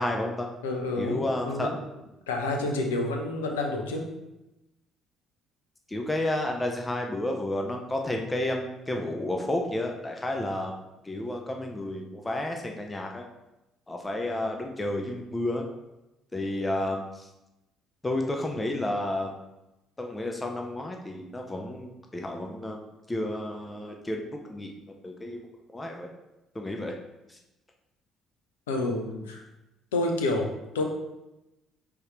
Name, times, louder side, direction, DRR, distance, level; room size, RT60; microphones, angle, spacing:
voice 1, 0.0-0.5 1.0-1.7 5.9-10.8 11.0-13.2 13.9-15.7 16.3-17.3 18.0-19.4 20.0-22.8 23.1-24.7 25.0-25.4 25.7-26.1 26.5-26.9 27.3-27.4, left 1 dB, 20° left, 2 dB, 0.6 m, -31 dB
voice 2, 0.6-1.8 2.3-4.1 28.7-29.4 29.9-30.8, left 2 dB, 75° left, 2 dB, 0.6 m, -29 dB
4.6 x 3.4 x 3.1 m, 0.95 s
figure-of-eight pair, 50°, 0 cm